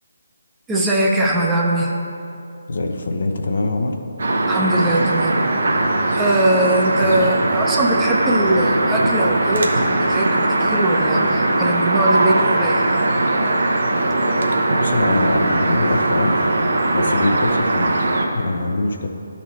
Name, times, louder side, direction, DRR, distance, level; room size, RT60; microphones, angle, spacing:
voice 1, 0.7-1.9 4.5-5.4 6.1-12.8, right 1 dB, 10° right, -3 dB, 0.7 m, -20 dB
voice 2, 2.7-4.0 7.0-7.3 14.8-16.4 16.9-19.1, left 2 dB, 60° left, 3 dB, 0.6 m, -23 dB
sound 1, 4.2-18.3, right 2 dB, 60° right, 0.8 m, -19 dB
sound 2, 10.2-15.6, left 1 dB, 45° left, 1.1 m, -35 dB
12.0 x 4.1 x 3.1 m, 2.6 s
figure-of-eight pair, 145°, 0 cm